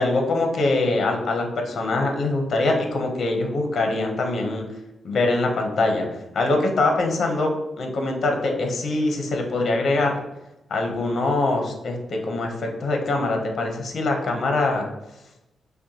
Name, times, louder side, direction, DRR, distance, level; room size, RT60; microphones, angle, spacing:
voice 1, 0.0-4.6 5.0-6.1 6.3-7.5 7.8-10.2 10.7-14.9, left 2 dB, 55° left, 2 dB, 0.7 m, -23 dB
5.6 x 2.1 x 2.8 m, 0.92 s
cardioid pair, 115°, 0 cm